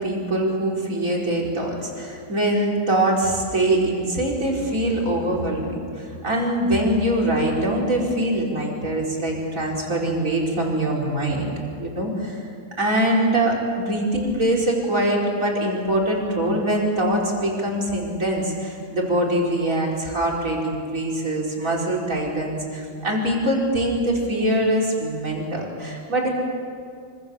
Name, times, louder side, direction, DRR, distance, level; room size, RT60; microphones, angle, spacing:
voice 1, 0.0-11.5 11.8-12.4 12.8-26.3, right 1 dB, 40° right, -2 dB, 5.0 m, -23 dB
26.0 x 25.5 x 7.1 m, 2.2 s
omnidirectional pair, 2.1 m